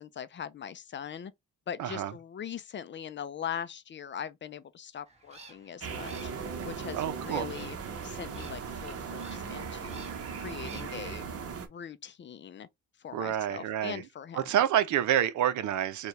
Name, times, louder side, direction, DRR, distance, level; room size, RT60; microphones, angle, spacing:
voice 1, 0.0-1.3 1.7-7.8 8.0-10.0 10.3-11.3 11.7-12.7 13.0-14.5, left 8 dB, 40° left, 0.5 m, -41 dB
voice 2, 1.8-2.1 6.9-7.5 13.1-14.0 14.3-16.1, right 10 dB, 75° right, 0.7 m, -28 dB
sound 1, 5.1-11.1, right 3 dB, 20° right, 1.3 m, -54 dB
sound 2, 5.8-11.7, right 6 dB, 50° right, 1.1 m, -38 dB
4.5 x 2.4 x 3.1 m
cardioid pair, 90°, 30 cm